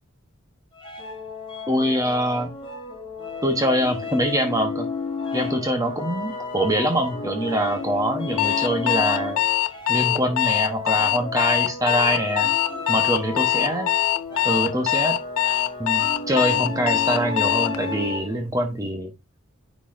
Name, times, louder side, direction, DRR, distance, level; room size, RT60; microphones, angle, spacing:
sound 1, 0.8-18.5, left 4 dB, 20° left, 3.4 m, -33 dB
voice 1, 1.7-2.5 3.4-4.9 5.3-9.4 9.9-12.5 12.9-13.9 14.4-15.2 15.8-19.1, equal, 15° right, 5 dB, 1.0 m, -24 dB
Alarm, 8.4-17.8, left 13 dB, 80° left, 0.4 m, -22 dB
9.9 x 4.1 x 2.6 m, 0.23 s
head